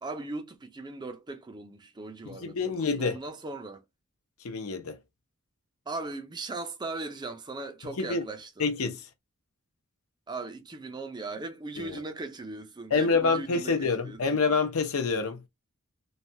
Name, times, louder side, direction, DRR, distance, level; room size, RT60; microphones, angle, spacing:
voice 1, 0.0-3.8 5.9-8.7 10.3-14.4, right 3 dB, 20° right, 0.4 m, -38 dB
voice 2, 2.3-3.2 4.4-5.0 8.0-8.2 8.6-9.1 11.8-12.0 12.9-15.4, left 4 dB, 75° left, 0.6 m, -27 dB
3.1 x 2.2 x 2.6 m
head